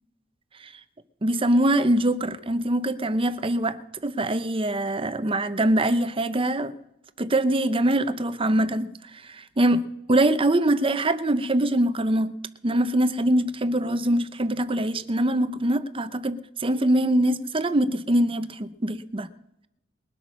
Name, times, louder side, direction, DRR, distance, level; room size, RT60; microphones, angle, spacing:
voice 1, 1.2-6.7 7.2-12.3 12.6-19.3, right 1 dB, 25° right, 0.7 m, -23 dB
21.0 x 8.4 x 6.2 m
head